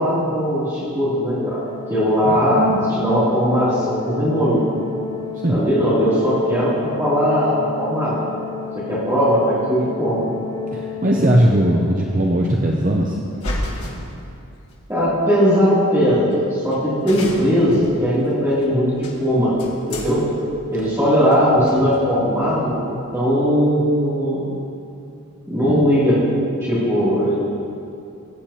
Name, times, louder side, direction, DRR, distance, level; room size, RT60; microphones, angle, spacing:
voice 1, 0.0-1.6 1.9-4.6 5.5-8.2 8.7-10.3 14.9-19.5 19.9-20.2 20.7-24.5 25.5-26.2 26.6-27.3, equal, 10° right, -12 dB, 2.8 m, -19 dB
Organ, 1.4-12.2, left 6 dB, 20° left, 0.4 m, -32 dB
voice 2, 2.2-2.6 5.4-5.6 10.7-13.2, right 1 dB, 35° right, -1 dB, 0.6 m, -19 dB
sound 1, 13.2-14.8 15.7-15.8 16.3-16.4 16.7-16.8 17.1-23.4, left 1 dB, 80° left, 1.8 m, -34 dB
17.5 x 8.6 x 2.9 m, 2.6 s
head